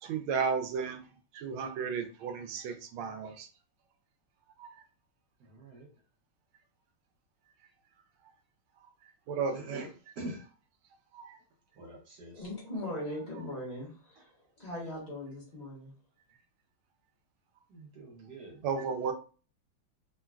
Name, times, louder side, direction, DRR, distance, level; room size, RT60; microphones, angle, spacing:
voice 1, 0.0-3.5 4.6-4.8 9.3-9.8 11.1-11.4 18.6-19.1, right 6 dB, 85° right, 7 dB, 1.4 m, -34 dB
voice 2, 5.4-5.9 9.5-9.9 10.1-10.5 11.7-12.5 17.7-18.7, right 2 dB, 65° right, 0 dB, 1.2 m, -45 dB
voice 3, 12.4-15.9, left 1 dB, 25° left, -5 dB, 1.0 m, -40 dB
3.8 x 2.2 x 2.2 m, 0.36 s
omnidirectional pair, 2.2 m